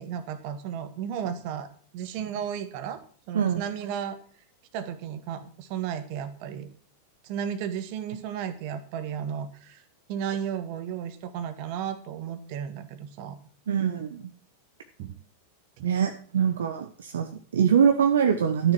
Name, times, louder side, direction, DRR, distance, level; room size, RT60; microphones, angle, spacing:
voice 1, 0.0-3.0 3.3-4.2 4.7-6.7 7.2-9.8 10.1-13.4 15.0-15.2 15.8-15.9, right 8 dB, 45° right, 11 dB, 1.5 m, -34 dB
voice 2, 13.7-14.3 15.8-18.7, right 8 dB, 65° right, 6 dB, 0.9 m, -23 dB
12.5 x 6.9 x 6.2 m, 0.43 s
figure-of-eight pair, 90°, 0 cm